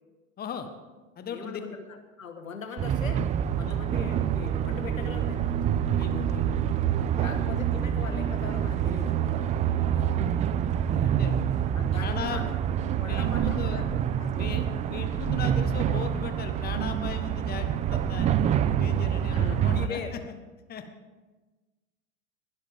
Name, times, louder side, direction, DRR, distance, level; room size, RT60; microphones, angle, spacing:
voice 1, 0.4-0.7 1.2-1.6 3.6-3.8 6.0-6.4 7.1-7.4 9.9-10.2 10.9-11.4 12.0-12.4 13.0-13.8 14.3-18.4 18.8-20.0 20.7-20.8, left 7 dB, 25° left, 7 dB, 1.4 m, -38 dB
voice 2, 1.3-3.2 3.5-5.5 7.2-9.5 11.7-12.5 12.9-14.4 19.3-20.2, left 5 dB, 80° left, 6 dB, 1.6 m, -40 dB
sound 1, 2.8-19.9, right 9 dB, 20° right, 0.4 m, -26 dB
21.0 x 12.5 x 3.7 m, 1.2 s
figure-of-eight pair, 85°, 40 cm